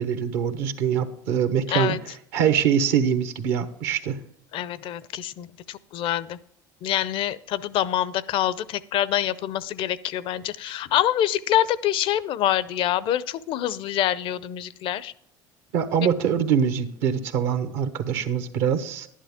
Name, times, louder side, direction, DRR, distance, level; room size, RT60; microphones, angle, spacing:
voice 1, 0.0-1.9 2.3-4.2 15.7-19.1, right 8 dB, 75° right, 8 dB, 1.2 m, -24 dB
voice 2, 4.5-6.4 6.8-15.1, left 12 dB, 60° left, 19 dB, 0.6 m, -26 dB
11.5 x 10.0 x 3.6 m, 0.71 s
hypercardioid pair, 75°, 10 cm